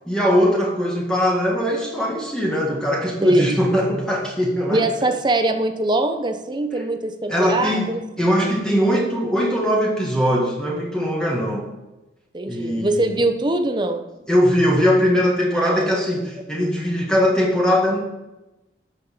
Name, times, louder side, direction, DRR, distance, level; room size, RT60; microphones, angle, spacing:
voice 1, 0.1-4.9 7.3-11.7 12.5-13.1 14.3-18.0, equal, 5° left, -2 dB, 1.9 m, -20 dB
voice 2, 3.2-3.5 4.7-8.0 12.3-14.1 15.6-15.9, right 2 dB, 25° right, 8 dB, 0.9 m, -22 dB
13.5 x 6.4 x 6.6 m, 1.0 s
head